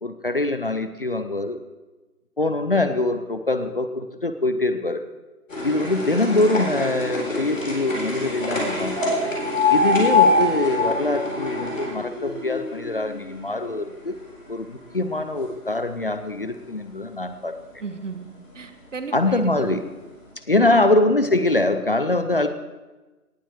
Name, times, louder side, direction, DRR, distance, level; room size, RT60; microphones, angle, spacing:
voice 1, 0.0-1.6 2.4-5.0 5.6-9.3 9.7-14.2 14.5-17.5 19.1-19.8 20.5-22.5, left 2 dB, 40° left, 9 dB, 0.6 m, -23 dB
sound 1, 5.5-13.7 14.1-15.0 15.7-15.8 16.1-16.2 16.4-16.5 17.4-17.5 18.1-18.2 18.9-19.0 19.4-19.5, left 2 dB, 55° left, 3.9 m, -24 dB
voice 2, 17.8-18.3 18.5-19.8 20.5-20.9, right 4 dB, 55° right, 9 dB, 1.3 m, -34 dB
18.5 x 7.2 x 4.7 m, 1.1 s
figure-of-eight pair, 150°, 45 cm